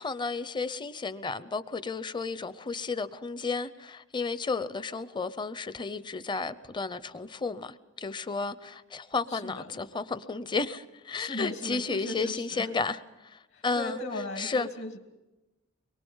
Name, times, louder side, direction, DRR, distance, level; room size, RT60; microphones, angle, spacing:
voice 1, 0.0-14.0 14.4-14.7, left 4 dB, 20° left, 0.6 m, -33 dB
voice 2, 9.3-9.7 11.1-12.7 13.5-15.0, left 1 dB, 65° left, 2.8 m, -37 dB
24.0 x 22.5 x 5.5 m
head